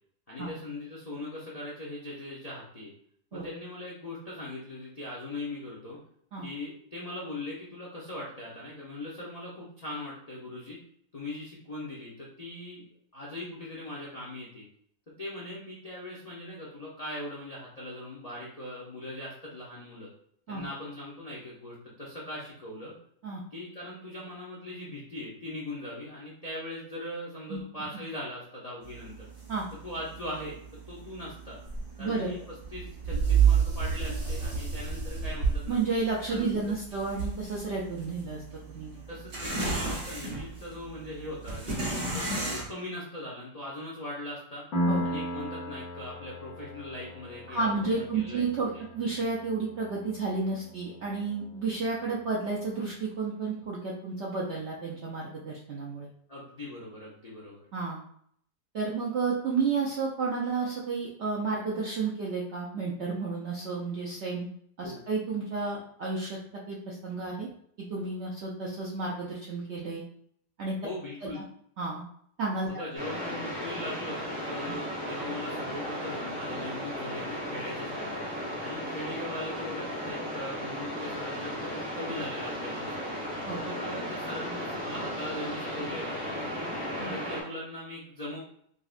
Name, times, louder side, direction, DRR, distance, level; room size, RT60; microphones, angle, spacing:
voice 1, 0.3-2.9 3.3-6.0 6.4-10.8 11.1-12.8 13.1-14.6 15.2-20.1 20.5-22.9 23.5-29.3 29.8-30.6 30.9-31.6 32.0-32.4 32.7-35.8 36.3-36.7 39.1-44.6 45.0-48.4 48.7-48.8 56.3-57.6 64.8-65.0 70.8-71.4 72.7-78.2 78.6-83.1 83.6-86.6 87.0-88.4, left 1 dB, 75° left, -6 dB, 0.3 m, -40 dB
sound 1, 28.8-42.7, right 6 dB, 50° right, 1.3 m, -31 dB
voice 2, 32.0-32.3 35.7-38.4 38.7-39.0 44.9-45.1 47.5-56.1 57.7-58.0 58.7-64.5 64.8-66.4 66.7-67.5 67.9-70.0 70.6-70.8 71.2-71.4 71.8-72.0 72.4-72.7 74.6-74.7 83.5-83.6 87.0-87.1, right 4 dB, 75° right, -4 dB, 0.6 m, -31 dB
Piano, 44.7-52.1, equal, 50° left, 1.1 m, -36 dB
sound 2, 72.9-87.4, equal, 10° right, 0.8 m, -35 dB
5.1 x 2.1 x 2.4 m, 0.66 s
omnidirectional pair, 1.8 m